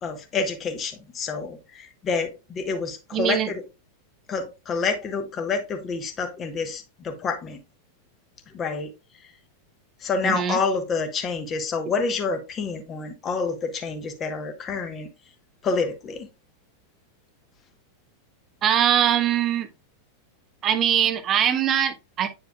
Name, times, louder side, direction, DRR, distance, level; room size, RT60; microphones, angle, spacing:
voice 1, 0.0-3.6 4.3-7.6 8.5-8.9 9.2-9.4 10.0-15.1 15.6-16.3, left 4 dB, 25° left, 1.2 m, -28 dB
voice 2, 3.1-3.5 10.2-10.6 18.6-19.7 20.6-22.3, right 9 dB, 30° right, 0.6 m, -22 dB
9.0 x 4.8 x 2.3 m
figure-of-eight pair, 90°, 0 cm